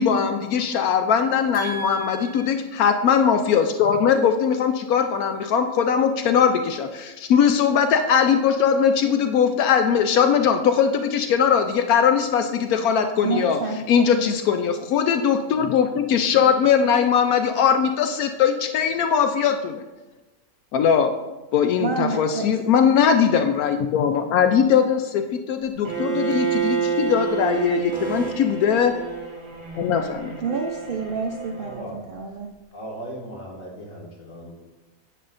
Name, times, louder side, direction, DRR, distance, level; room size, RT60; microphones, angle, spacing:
voice 1, 0.0-13.6 13.9-19.8 20.7-21.1 21.5-28.9 29.8-30.3, left 7 dB, 80° left, 6 dB, 1.0 m, -20 dB
voice 2, 1.5-2.5 13.2-14.3 21.8-22.5 27.9-28.3 30.4-32.5, right 4 dB, 60° right, 2 dB, 0.5 m, -29 dB
Bowed string instrument, 25.8-31.8, right 7 dB, 20° right, 1.4 m, -29 dB
voice 3, 31.6-32.0 32.7-34.5, right 1 dB, 65° left, -3 dB, 2.3 m, -37 dB
10.0 x 7.9 x 2.5 m, 1.1 s
omnidirectional pair, 1.6 m